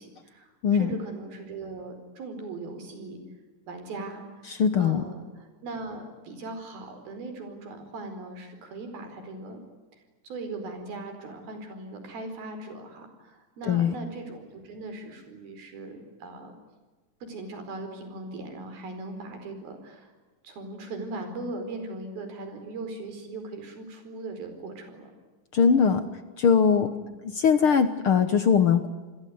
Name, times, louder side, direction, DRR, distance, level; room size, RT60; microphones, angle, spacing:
voice 1, 0.0-3.2 3.7-4.4 4.8-9.6 10.2-16.6 17.2-20.1 20.4-25.1 26.8-27.1, right 2 dB, 75° right, 7 dB, 6.5 m, -39 dB
voice 2, 4.6-5.0 13.7-13.9 25.5-26.0 26.4-26.9 27.4-28.9, left 6 dB, 75° left, 11 dB, 1.2 m, -20 dB
28.5 x 21.0 x 9.5 m, 1.3 s
omnidirectional pair, 4.3 m